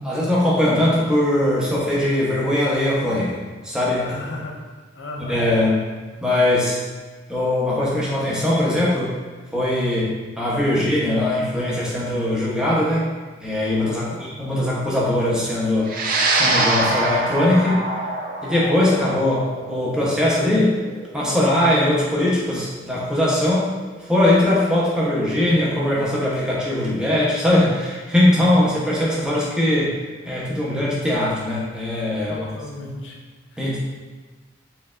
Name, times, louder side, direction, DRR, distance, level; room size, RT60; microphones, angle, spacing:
voice 1, 0.0-4.1 5.2-5.8 6.2-6.8 7.3-9.1 9.5-13.1 13.4-15.9 16.4-17.8 18.4-20.7 21.1-23.7 24.0-30.0 30.3-32.4 32.8-32.9 33.6-33.8, left 1 dB, 5° right, -7 dB, 0.8 m, -20 dB
voice 2, 4.0-5.4 13.8-14.3 32.3-33.2 33.5-33.8, left 2 dB, 75° left, 1 dB, 0.5 m, -36 dB
sound 1, 15.9-24.4, right 2 dB, 50° right, 0.5 m, -25 dB
4.4 x 3.3 x 2.4 m, 1.4 s
head